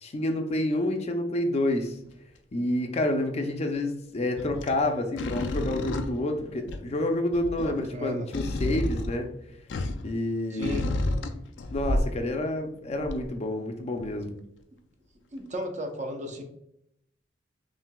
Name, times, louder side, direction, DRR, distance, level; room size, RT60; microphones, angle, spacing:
voice 1, 0.0-2.0 2.5-9.3 10.0-10.8 11.7-14.4, left 1 dB, 35° left, 5 dB, 0.5 m, -28 dB
sound 1, 1.7-2.1 4.4-4.8 5.2-7.0 7.3-10.1 10.6-12.3 13.0-13.3 14.0-14.1, left 1 dB, 90° left, 0.4 m, -31 dB
voice 2, 7.6-8.3 10.5-10.9 15.3-16.4, equal, 40° right, 3 dB, 0.7 m, -34 dB
5.7 x 2.7 x 2.2 m, 0.77 s
head